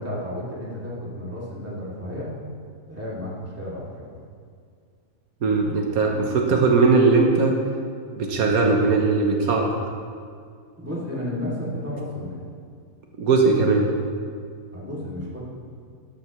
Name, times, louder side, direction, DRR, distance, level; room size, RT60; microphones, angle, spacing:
voice 1, 0.0-2.3 2.9-4.1 10.8-12.4 14.7-15.4, left 1 dB, 10° right, -7 dB, 2.8 m, -32 dB
voice 2, 5.4-7.5 8.2-9.7 13.2-13.9, right 4 dB, 80° right, 1 dB, 1.5 m, -19 dB
13.0 x 12.5 x 3.2 m, 2.2 s
omnidirectional pair, 1.5 m